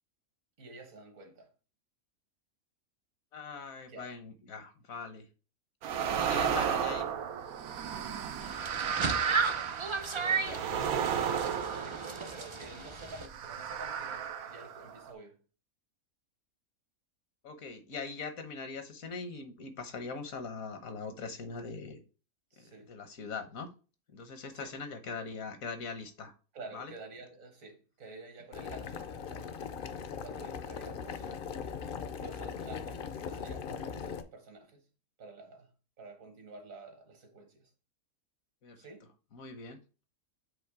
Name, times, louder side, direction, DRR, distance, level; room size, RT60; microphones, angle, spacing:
voice 1, 0.6-1.5 3.9-4.1 6.0-6.9 10.1-15.4 22.5-22.9 24.5-24.7 26.5-29.6 29.9-31.6 32.1-34.9 35.2-35.7 36.0-37.7 38.8-39.1, right 3 dB, 70° right, 1.6 m, -50 dB
voice 2, 3.3-5.3 6.1-7.0 10.3-10.8 17.4-22.0 22.6-23.7 24.1-26.3 26.7-26.9 38.6-38.8 39.3-39.8, left 4 dB, 75° left, 1.4 m, -41 dB
sound 1, 5.8-12.6 13.2-15.1, right 8 dB, 90° right, 1.1 m, -33 dB
sound 2, 8.4-13.3, right 5 dB, 45° right, 0.4 m, -34 dB
Boiling, 28.5-34.2, left 6 dB, 55° left, 0.6 m, -40 dB
7.7 x 3.1 x 4.7 m
omnidirectional pair, 1.5 m